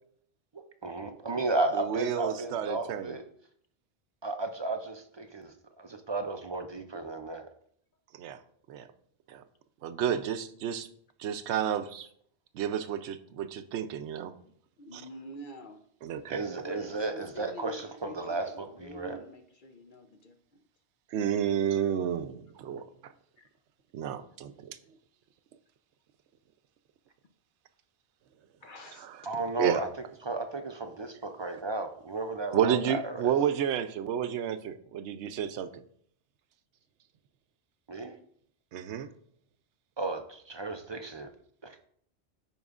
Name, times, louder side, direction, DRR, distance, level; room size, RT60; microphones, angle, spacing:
voice 1, 0.5-3.2 4.2-7.5 16.3-19.2 29.3-29.9 30.2-33.3 37.9-38.2 40.0-41.3 41.6-41.8, right 3 dB, 45° right, 6 dB, 0.3 m, -34 dB
voice 2, 1.7-3.2 8.1-8.4 8.7-8.9 9.3-9.4 9.8-10.9 11.2-12.1 12.5-14.3 14.9-15.0 16.0-16.4 21.1-23.1 23.9-24.8 29.0-29.1 29.6-29.8 32.5-35.8 38.7-39.1, right 9 dB, 80° right, 11 dB, 0.9 m, -31 dB
voice 3, 14.8-15.8 16.6-20.6 23.4-23.5 28.6-29.1 33.1-33.2, left 1 dB, 55° left, 6 dB, 0.8 m, -47 dB
14.5 x 4.8 x 2.4 m, 0.66 s
omnidirectional pair, 1.1 m